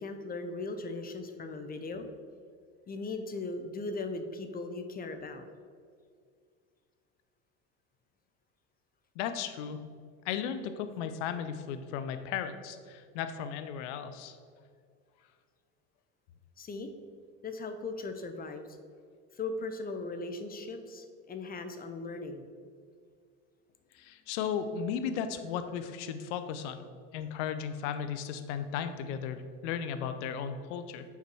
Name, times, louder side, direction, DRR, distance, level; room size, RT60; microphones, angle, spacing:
voice 1, 0.0-2.1 2.9-5.4 16.6-16.9 17.4-18.7 19.3-22.5, left 3 dB, 25° left, 7 dB, 0.7 m, -38 dB
voice 2, 9.2-9.9 10.2-14.4 23.9-26.8 27.1-31.0, left 8 dB, 80° left, 10 dB, 0.7 m, -35 dB
5.7 x 4.6 x 6.1 m, 2.1 s
supercardioid pair, 100°, 35 cm